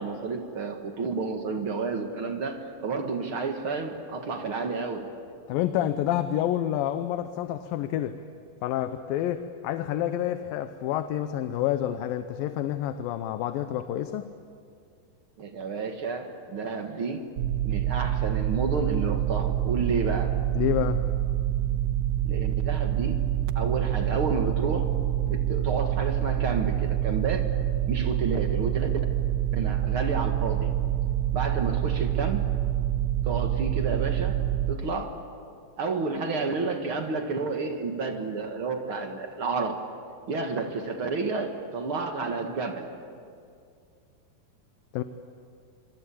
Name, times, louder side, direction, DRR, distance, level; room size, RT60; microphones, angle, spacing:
voice 1, 0.0-5.1 15.4-17.3 17.6-20.4 22.3-23.2 23.5-24.9 25.3-27.5 27.9-28.9 29.5-30.7 31.3-32.5 33.2-34.4 34.7-35.2 35.8-39.8 40.3-42.9, right 4 dB, 45° right, 4 dB, 1.9 m, -30 dB
voice 2, 5.5-8.2 8.6-14.3 20.5-21.0 44.9-45.0, left 11 dB, 75° left, 9 dB, 2.4 m, -28 dB
sound 1, 17.4-34.8, right 12 dB, 75° right, 1.7 m, -26 dB
26.0 x 24.5 x 8.5 m, 2.3 s
omnidirectional pair, 4.4 m